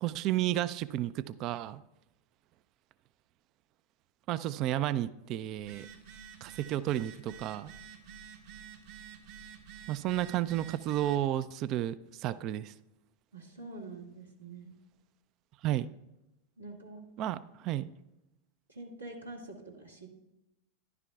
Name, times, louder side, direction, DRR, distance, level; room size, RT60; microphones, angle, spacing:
voice 1, 0.0-1.8 4.3-5.9 6.4-7.7 9.9-12.7 15.6-15.9 17.2-17.9, right 13 dB, 40° right, 17 dB, 0.3 m, -32 dB
Telephone, 5.6-11.3, right 8 dB, 55° right, 1.3 m, -49 dB
voice 2, 13.3-14.7 16.6-17.1 18.7-20.1, right 2 dB, 80° right, -1 dB, 2.0 m, -46 dB
13.0 x 11.5 x 2.3 m, 0.93 s
figure-of-eight pair, 90°, 0 cm